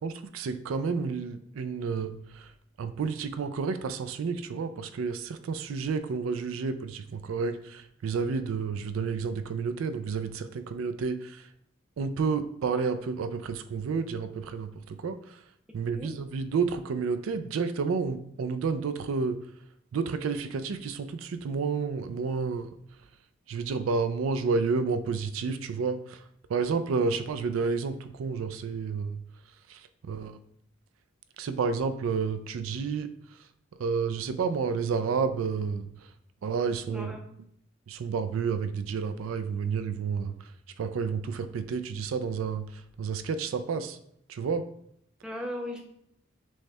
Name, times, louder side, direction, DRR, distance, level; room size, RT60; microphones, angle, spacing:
voice 1, 0.0-2.5 2.8-11.5 12.0-15.4 15.7-19.4 19.9-22.7 23.5-26.2 26.5-29.2 29.7-29.8 30.1-30.4 31.4-33.1 33.8-35.9 36.4-37.1 37.9-40.3 40.8-44.0 44.3-44.6, right 5 dB, 85° right, 10 dB, 0.4 m, -30 dB
voice 2, 36.9-37.3 45.2-45.8, left 1 dB, 5° right, 1 dB, 0.5 m, -37 dB
6.3 x 2.1 x 3.3 m, 0.71 s
head